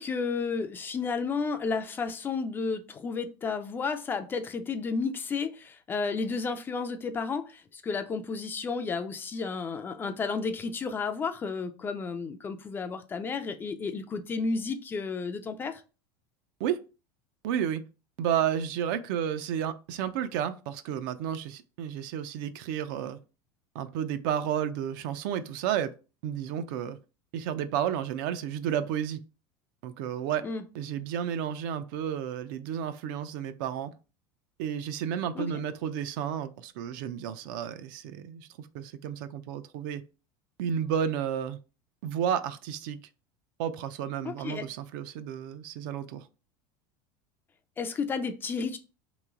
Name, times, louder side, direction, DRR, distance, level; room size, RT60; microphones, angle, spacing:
voice 1, 0.0-15.8 30.4-30.6 35.4-35.5 44.2-44.6 47.8-48.8, left 4 dB, 20° left, 0.3 m, -32 dB
voice 2, 17.4-17.8 18.2-23.2 23.7-25.9 26.2-27.0 27.3-29.2 29.8-30.4 30.7-33.9 34.6-40.0 40.6-41.6 42.0-43.0 43.6-46.3, right 9 dB, 65° right, 0.5 m, -32 dB
3.0 x 3.0 x 3.6 m
supercardioid pair, 150°, 11 cm